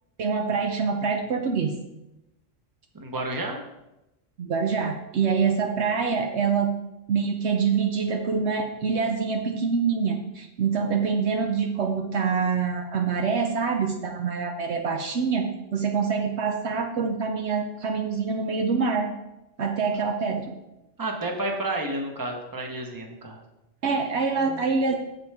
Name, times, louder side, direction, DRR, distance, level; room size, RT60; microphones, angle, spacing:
voice 1, 0.2-1.8 4.4-6.7 7.1-19.1 19.6-20.5 23.8-25.0, right 5 dB, 65° right, 3 dB, 0.9 m, -25 dB
voice 2, 2.9-3.6 21.0-23.4 24.5-24.6, right 2 dB, 20° right, 2 dB, 1.0 m, -31 dB
8.0 x 7.8 x 3.5 m, 0.94 s
omnidirectional pair, 1.3 m